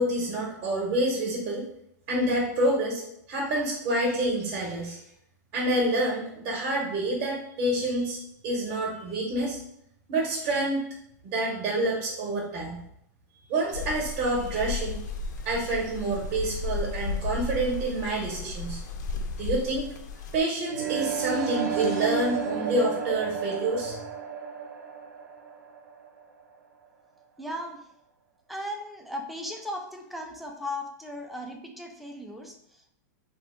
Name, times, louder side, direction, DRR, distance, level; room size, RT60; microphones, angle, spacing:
voice 1, 0.0-1.6 2.1-3.0 3.3-5.0 5.5-9.6 10.1-10.9 11.2-12.8 13.5-15.0 15.4-18.8 19.4-19.9 20.3-24.0, right 1 dB, 40° right, -1 dB, 0.7 m, -27 dB
sound 1, 13.7-20.4, left 4 dB, 75° left, 0.4 m, -34 dB
sound 2, 20.7-26.6, right 7 dB, 80° right, 0.5 m, -32 dB
voice 2, 27.4-27.9 28.5-32.9, left 1 dB, ahead, 1 dB, 0.3 m, -37 dB
2.7 x 2.0 x 3.6 m, 0.74 s
hypercardioid pair, 140°, 10 cm